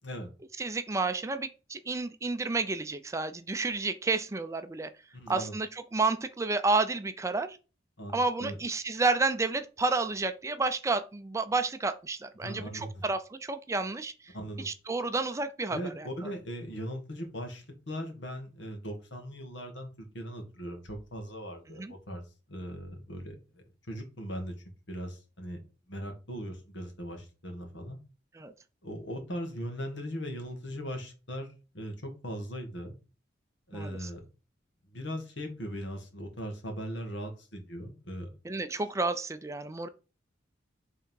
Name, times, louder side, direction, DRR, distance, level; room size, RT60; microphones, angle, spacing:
voice 1, 0.6-4.9 5.3-7.6 8.1-16.1 21.7-21.9 28.3-28.5 33.7-34.1 38.4-39.9, right 3 dB, 15° right, 10 dB, 0.4 m, -31 dB
voice 2, 5.1-5.6 8.0-8.6 12.4-13.0 14.3-14.7 15.7-19.9 20.1-22.2 22.5-24.5 24.9-25.6 25.9-28.0 28.8-31.5 31.7-32.9 33.7-34.3 34.9-38.3, equal, 80° left, 4 dB, 1.8 m, -39 dB
5.6 x 3.7 x 4.6 m, 0.32 s
head